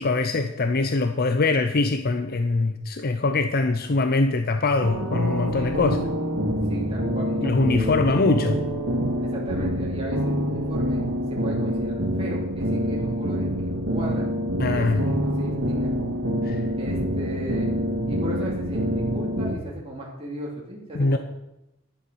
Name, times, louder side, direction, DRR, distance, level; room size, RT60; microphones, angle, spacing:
voice 1, 0.0-6.0 7.4-8.6 14.6-15.0 16.4-16.6 20.9-21.2, left 3 dB, 45° left, 8 dB, 0.6 m, -23 dB
sound 1, 4.8-19.5, equal, 85° right, 2.2 m, -26 dB
voice 2, 5.5-6.0 6.7-7.8 9.2-14.3 14.7-15.9 16.8-17.7 18.1-18.9 19.1-21.2, right 1 dB, 25° right, -4 dB, 2.8 m, -35 dB
10.5 x 10.5 x 6.3 m, 0.90 s
head